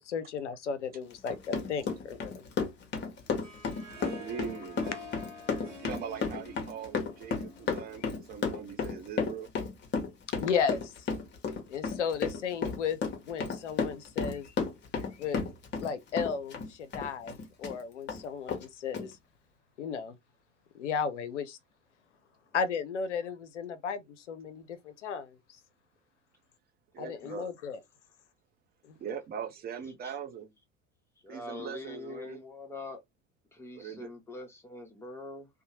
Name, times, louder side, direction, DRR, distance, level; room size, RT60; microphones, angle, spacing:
voice 1, 0.0-2.4 10.4-10.9 11.7-13.0 13.3-14.5 15.1-15.4 15.7-19.2 19.8-20.2 20.7-21.6 22.5-25.4 27.0-27.8 28.8-29.0, left 6 dB, 70° left, 0.6 m, -34 dB
Run, 1.1-17.8 18.1-18.2 18.5-18.6 18.9-19.1, left 5 dB, 30° left, 0.9 m, -33 dB
Harp, 3.2-8.4, left 1 dB, 85° right, 1.1 m, -48 dB
voice 2, 4.1-4.8 5.8-9.5 26.9-27.5 29.0-30.5 31.3-32.4 33.8-34.1, right 7 dB, 25° right, 0.5 m, -41 dB
voice 3, 31.2-33.0 33.5-35.5, left 2 dB, 5° left, 0.8 m, -43 dB
2.7 x 2.1 x 2.8 m
figure-of-eight pair, 75°, 37 cm